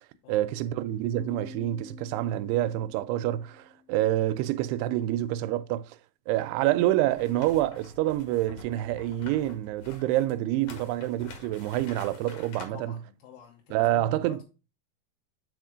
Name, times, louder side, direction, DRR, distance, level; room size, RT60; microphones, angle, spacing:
voice 1, 0.3-6.0 6.3-12.9 13.7-14.4, right 14 dB, 85° right, 2.6 m, -27 dB
Piano, 1.1-4.6, left 2 dB, 55° right, 2.3 m, -48 dB
sound 1, 7.1-12.7, left 2 dB, 60° left, 2.3 m, -47 dB
voice 2, 12.6-14.4, left 7 dB, 85° left, 3.0 m, -49 dB
6.1 x 4.3 x 4.9 m
omnidirectional pair, 4.7 m